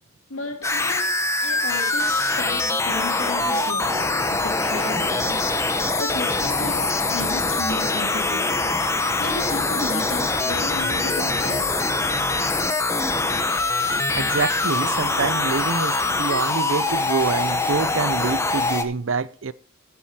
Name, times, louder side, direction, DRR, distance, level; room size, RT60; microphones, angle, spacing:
voice 1, 0.3-8.7 9.2-11.8, left 2 dB, 90° left, 2.3 m, -34 dB
sound 1, 0.6-18.8, left 2 dB, 15° left, 0.9 m, -23 dB
voice 2, 14.1-19.5, right 4 dB, 75° right, 0.6 m, -26 dB
14.0 x 7.8 x 4.4 m
head